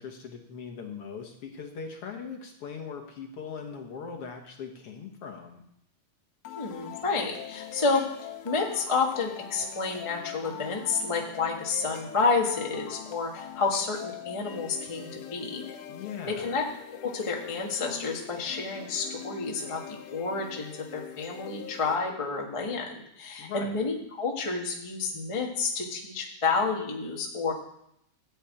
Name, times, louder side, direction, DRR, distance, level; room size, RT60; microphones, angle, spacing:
voice 1, 0.0-5.6 15.9-16.6 23.4-23.8, left 6 dB, 60° left, 3 dB, 1.8 m, -40 dB
sound 1, 6.5-22.4, left 10 dB, 85° left, 2.4 m, -43 dB
voice 2, 6.6-8.0 8.4-15.6 16.3-16.6 17.0-27.5, left 4 dB, 20° left, 0 dB, 0.8 m, -30 dB
14.0 x 5.8 x 8.8 m, 0.77 s
omnidirectional pair, 3.5 m